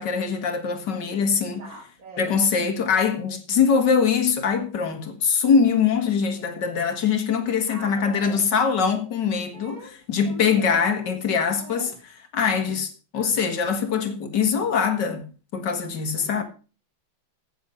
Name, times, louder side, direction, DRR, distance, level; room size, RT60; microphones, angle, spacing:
voice 1, 0.0-1.6 2.2-9.8 10.1-11.9 12.3-15.2 15.5-16.4, left 6 dB, 55° left, 2.4 m, -23 dB
voice 2, 1.6-2.4 7.7-8.4 9.5-9.9 10.2-11.9 16.2-16.4, right 1 dB, 40° right, 3.3 m, -42 dB
16.5 x 7.1 x 5.5 m
omnidirectional pair, 2.3 m